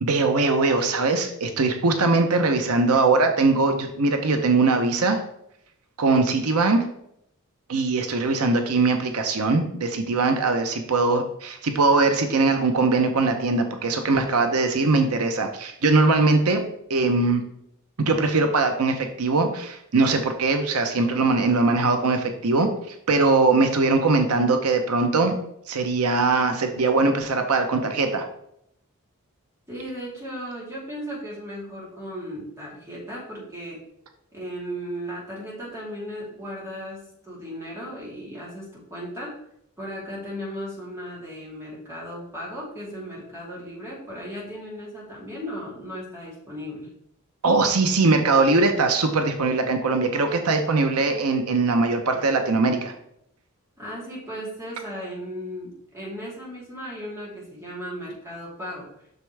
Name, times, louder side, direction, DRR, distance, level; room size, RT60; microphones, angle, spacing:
voice 1, 0.0-5.2 6.0-6.9 7.7-16.6 16.9-17.4 18.0-25.3 25.7-28.2 47.4-52.9, right 3 dB, 85° right, 6 dB, 0.8 m, -21 dB
voice 2, 29.7-33.8 34.3-39.4 39.8-46.9 53.8-58.9, equal, 15° right, -5 dB, 3.1 m, -36 dB
8.1 x 6.3 x 3.4 m, 0.74 s
head